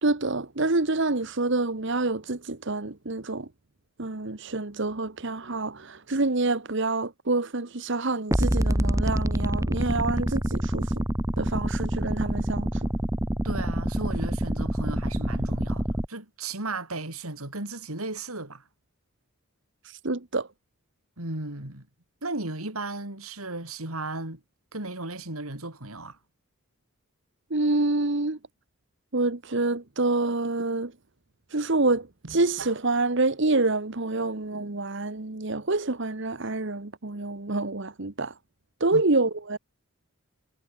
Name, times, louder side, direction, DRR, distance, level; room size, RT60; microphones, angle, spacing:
voice 1, 0.0-3.5 4.0-10.9 11.4-12.9 19.8-20.5 27.5-28.4 29.1-30.9 31.5-38.3 38.8-39.6, right 2 dB, 55° right, 1.3 m, -27 dB
sound 1, 8.3-16.1, equal, 15° right, 1.3 m, -26 dB
voice 2, 13.4-18.6 21.2-21.8 22.2-24.4 24.7-26.2 38.9-39.0, right 2 dB, 80° right, 5.3 m, -35 dB
head